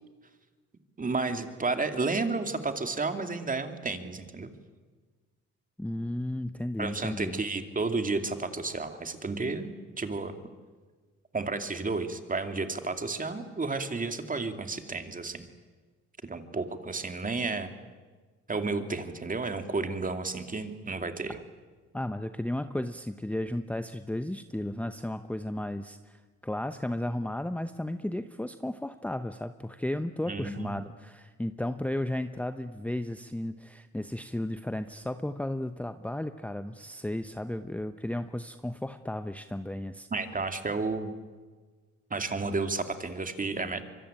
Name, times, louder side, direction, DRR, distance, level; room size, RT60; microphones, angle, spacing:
voice 1, 1.0-4.5 6.8-9.7 10.0-10.3 11.3-15.4 16.2-17.7 18.5-21.4 30.3-30.7 40.1-41.1 42.1-43.8, right 3 dB, 25° right, 7 dB, 2.6 m, -32 dB
voice 2, 5.8-7.4 21.9-40.1, left 1 dB, 5° left, 9 dB, 0.9 m, -34 dB
25.0 x 23.5 x 9.0 m, 1.4 s
cardioid pair, 90°, 30 cm